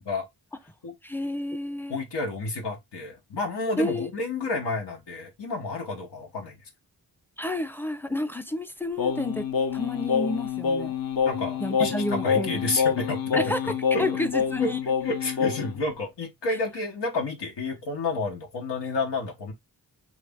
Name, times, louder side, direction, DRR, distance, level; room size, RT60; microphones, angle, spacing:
voice 1, 1.0-2.0 3.8-4.1 7.4-9.5 9.7-10.9 11.6-12.5 13.4-13.6 14.0-14.8, left 1 dB, 5° left, 0.5 m, -30 dB
voice 2, 1.9-6.6 11.2-14.1 14.6-19.5, left 3 dB, 85° left, 1.0 m, -30 dB
Singing, 9.0-15.8, left 7 dB, 60° left, 0.7 m, -27 dB
3.2 x 2.5 x 3.4 m
cardioid pair, 50°, 41 cm